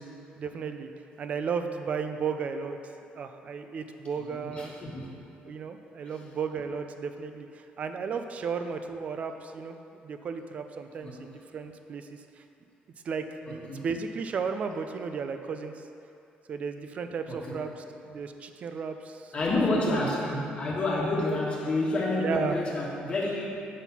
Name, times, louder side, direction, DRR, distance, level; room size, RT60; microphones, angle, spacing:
voice 1, 0.4-0.9 1.2-2.8 3.2-4.7 5.4-9.8 10.0-12.4 13.0-15.8 16.5-19.9 22.2-22.6, right 5 dB, 40° right, 7 dB, 0.4 m, -34 dB
voice 2, 4.2-5.1 11.0-11.2 13.5-13.9 17.3-17.6 19.3-23.6, left 2 dB, 35° left, -4 dB, 1.4 m, -29 dB
7.2 x 4.1 x 5.7 m, 2.7 s
cardioid pair, 145°, 3 cm